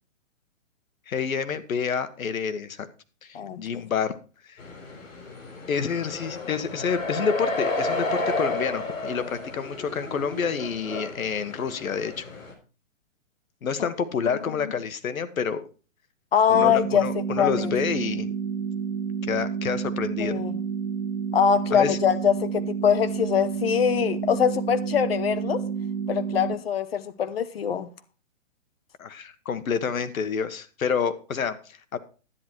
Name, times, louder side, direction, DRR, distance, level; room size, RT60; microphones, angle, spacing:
voice 1, 1.1-2.9 3.2-4.2 4.4-4.6 5.7-12.2 13.6-15.6 16.5-18.3 19.3-20.4 21.7-22.0 29.0-32.0, left 6 dB, 90° left, 1.4 m, -28 dB
sound 1, 4.6-12.5, left 2 dB, 75° left, 4.9 m, -32 dB
voice 2, 16.3-17.1 17.4-17.7 20.2-20.6 21.3-25.6 26.1-27.9, left 8 dB, 50° left, 1.0 m, -23 dB
sound 2, 16.5-26.5, right 7 dB, 50° right, 2.0 m, -30 dB
10.5 x 9.9 x 4.5 m
hypercardioid pair, 170°, 40 cm